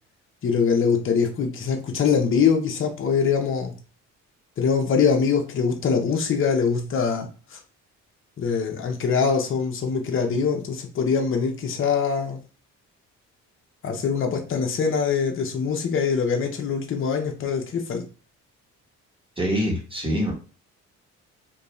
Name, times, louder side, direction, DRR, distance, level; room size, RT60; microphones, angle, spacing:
voice 1, 0.4-3.7 4.6-7.6 8.4-12.4 13.8-18.0, left 6 dB, 45° left, 0.7 m, -23 dB
voice 2, 19.4-20.3, equal, 15° right, 1.2 m, -24 dB
2.5 x 2.2 x 3.1 m
cardioid pair, 90°, 30 cm